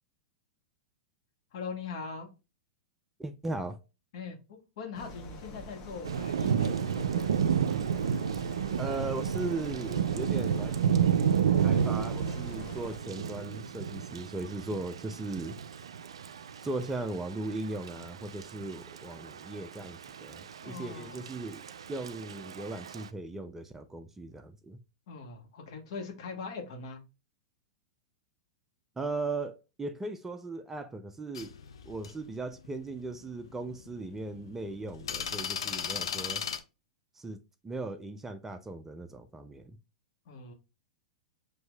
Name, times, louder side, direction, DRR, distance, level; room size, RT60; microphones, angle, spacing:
voice 1, 1.5-2.3 4.1-7.4 20.6-21.2 25.1-27.0 40.3-40.5, left 4 dB, 60° left, 1.3 m, -41 dB
voice 2, 3.2-3.8 8.8-11.3 11.6-15.6 16.6-21.6 21.9-24.8 29.0-31.5 31.9-36.4 37.2-39.8, right 2 dB, 10° right, 0.4 m, -38 dB
sound 1, 4.9-13.0, left 2 dB, 35° left, 1.0 m, -46 dB
Thunder / Rain, 6.0-23.1, right 8 dB, 85° right, 0.3 m, -31 dB
sound 2, 31.3-36.6, left 7 dB, 80° left, 0.6 m, -36 dB
6.2 x 2.7 x 2.2 m
hypercardioid pair, 120°, 3 cm